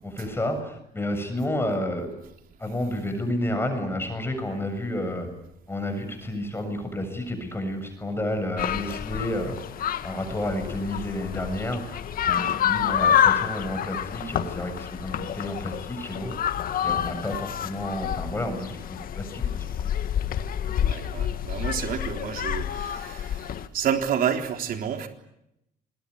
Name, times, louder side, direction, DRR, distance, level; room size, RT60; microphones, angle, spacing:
voice 1, 0.0-2.1 2.6-5.3 5.7-9.6 10.0-12.0 12.3-16.3 16.8-19.7, left 1 dB, 15° left, 6 dB, 7.2 m, -30 dB
sound 1, 8.6-23.7, left 9 dB, 60° left, 1.9 m, -28 dB
voice 2, 20.8-25.1, right 8 dB, 60° right, 5 dB, 3.7 m, -29 dB
26.0 x 21.5 x 9.8 m, 0.81 s
cardioid pair, 110°, 17 cm